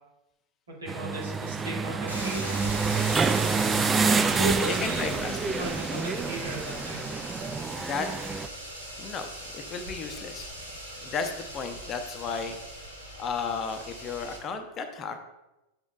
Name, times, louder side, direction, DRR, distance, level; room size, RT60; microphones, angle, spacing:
voice 1, 0.8-2.6 4.3-7.0, right 2 dB, 65° right, -4 dB, 2.6 m, -35 dB
sound 1, 0.9-8.5, right 4 dB, 15° right, 0.3 m, -27 dB
sound 2, 2.1-14.4, right 1 dB, 85° right, 1.7 m, -39 dB
voice 2, 4.7-5.4 7.8-8.1 9.0-10.5 11.0-12.6 13.2-15.2, left 5 dB, 30° left, 7 dB, 0.7 m, -34 dB
8.8 x 7.1 x 2.4 m, 0.99 s
figure-of-eight pair, 90°, 0 cm